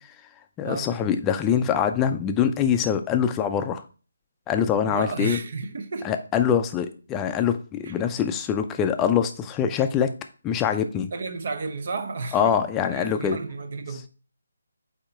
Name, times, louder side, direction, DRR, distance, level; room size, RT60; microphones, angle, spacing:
voice 1, 0.6-3.8 4.5-5.4 6.0-10.1 10.4-11.1 12.3-13.4, left 8 dB, 15° left, 0.6 m, -24 dB
voice 2, 4.9-6.1 7.8-7.9 11.1-12.6 12.9-14.1, right 3 dB, 50° right, 0.7 m, -32 dB
8.6 x 2.9 x 4.4 m
figure-of-eight pair, 155°, 0 cm